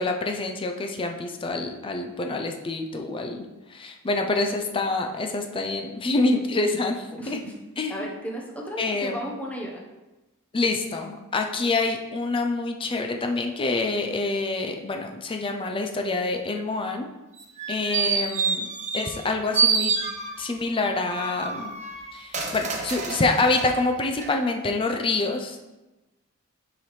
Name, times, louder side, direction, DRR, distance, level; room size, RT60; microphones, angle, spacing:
voice 1, 0.0-3.5 3.7-7.4 7.8-8.0 8.8-9.2 10.5-17.1 17.7-18.7 18.9-19.9 20.4-21.7 22.1-25.8, left 3 dB, 25° left, 4 dB, 0.4 m, -26 dB
voice 2, 7.2-7.5 7.9-9.8, equal, 5° left, -2 dB, 0.9 m, -34 dB
sound 1, 17.4-19.3 19.5-20.6 21.1-23.7 24.2-24.3, right 5 dB, 35° right, 0.8 m, -27 dB
6.7 x 4.9 x 3.2 m, 1.1 s
head